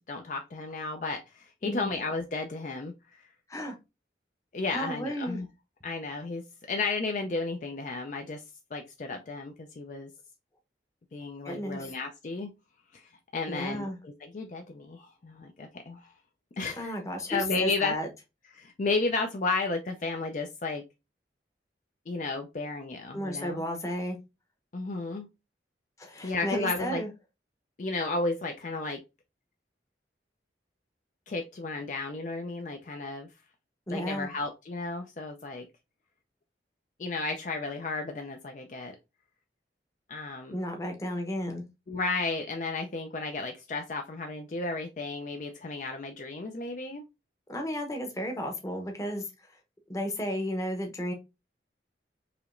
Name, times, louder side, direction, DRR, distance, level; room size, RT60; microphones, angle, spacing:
voice 1, 0.1-3.2 4.5-5.5 5.8-6.4 6.7-8.4 8.7-10.1 11.1-12.5 12.9-16.1 16.6-17.0 17.3-17.9 18.5-20.8 22.1-23.6 24.7-25.3 26.2-27.0 27.8-29.0 31.3-33.3 33.9-35.7 37.0-39.0 40.1-40.6 41.9-47.0, left 3 dB, 45° left, 4 dB, 0.4 m, -33 dB
voice 2, 4.7-5.4 11.4-12.0 13.5-14.0 16.8-18.1 23.1-24.2 26.0-27.1 33.9-34.3 40.5-41.6 47.5-49.2 49.9-51.1, equal, 20° left, 3 dB, 0.8 m, -33 dB
4.9 x 2.9 x 2.5 m, 0.25 s
head